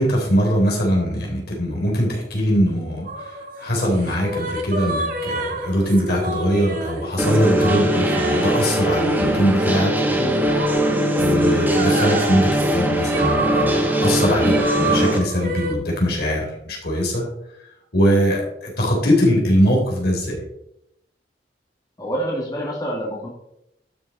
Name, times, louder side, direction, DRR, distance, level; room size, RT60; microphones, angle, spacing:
voice 1, 0.0-10.4 11.2-17.3 17.9-20.5, equal, 65° left, -2 dB, 3.8 m, -21 dB
sound 1, 3.1-15.7, right 2 dB, 55° right, 1.8 m, -29 dB
sound 2, 7.2-15.2, right 1 dB, 10° right, 1.4 m, -20 dB
voice 2, 22.0-23.3, right 1 dB, 25° left, -4 dB, 2.3 m, -26 dB
12.0 x 6.6 x 4.2 m, 0.80 s
head